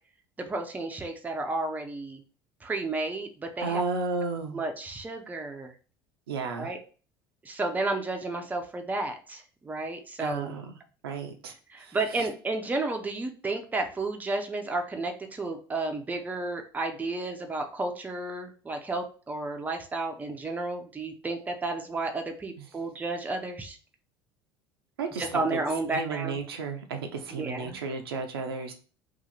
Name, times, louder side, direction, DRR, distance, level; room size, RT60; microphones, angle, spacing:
voice 1, 0.4-2.2 2.6-3.8 4.5-5.7 6.6-6.8 7.4-10.5 11.7-23.8 25.2-26.4 27.4-27.8, right 2 dB, 15° right, 4 dB, 0.5 m, -32 dB
voice 2, 3.6-4.6 6.3-6.7 10.2-10.8 11.0-11.5 11.8-12.3 22.6-22.7 25.0-25.6 25.9-28.7, right 4 dB, 70° right, 5 dB, 0.5 m, -33 dB
2.7 x 2.4 x 4.0 m, 0.39 s
figure-of-eight pair, 65°, 13 cm